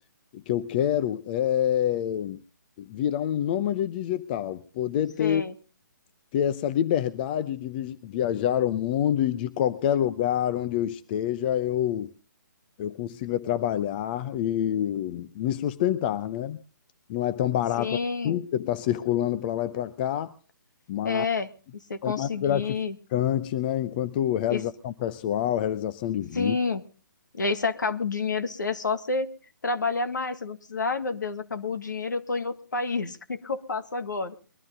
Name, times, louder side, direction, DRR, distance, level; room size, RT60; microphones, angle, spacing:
voice 1, 0.3-2.4 2.8-5.4 6.3-12.1 12.8-16.6 17.1-18.0 18.2-20.3 20.9-21.3 22.0-22.8 23.1-26.6, left 11 dB, 30° left, 12 dB, 0.7 m, -27 dB
voice 2, 5.2-5.5 17.8-18.4 21.0-21.5 21.9-22.9 24.5-24.6 26.3-26.8 27.3-29.3 29.6-34.3, left 4 dB, 65° left, 9 dB, 1.8 m, -29 dB
22.0 x 13.0 x 3.8 m, 0.37 s
figure-of-eight pair, 135°, 11 cm